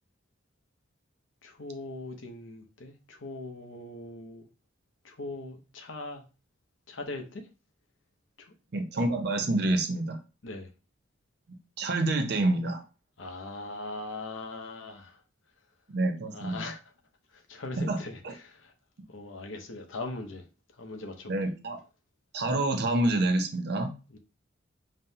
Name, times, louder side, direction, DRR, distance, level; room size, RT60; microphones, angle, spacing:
voice 1, 1.4-4.5 5.0-6.2 6.9-7.4 8.5-8.6 10.4-10.7 13.2-15.2 16.3-16.8 17.3-18.7 19.1-20.4 20.8-21.3 24.1-24.2, left 2 dB, 75° left, 4 dB, 0.8 m, -40 dB
voice 2, 8.7-10.2 11.8-12.8 15.9-16.7 17.8-18.3 21.3-21.8 22.3-23.9, right 2 dB, 55° right, 7 dB, 0.6 m, -27 dB
5.3 x 2.1 x 2.7 m, 0.32 s
head